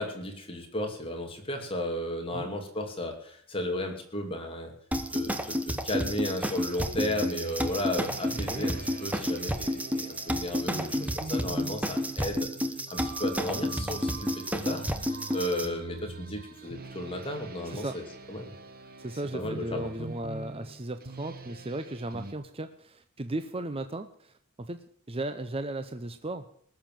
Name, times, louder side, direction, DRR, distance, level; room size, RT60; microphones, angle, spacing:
voice 1, 0.0-4.7 5.1-12.5 12.9-14.8 15.3-18.0 18.3-18.5 19.3-19.9, left 1 dB, 25° left, 2 dB, 2.7 m, -34 dB
sound 1, 4.9-15.7, equal, 5° right, 1.0 m, -31 dB
sound 2, 6.4-22.3, right 2 dB, 45° right, 1.3 m, -44 dB
voice 2, 17.6-18.0 19.0-26.5, right 2 dB, 25° right, 9 dB, 0.7 m, -36 dB
19.5 x 7.3 x 7.5 m, 0.62 s
head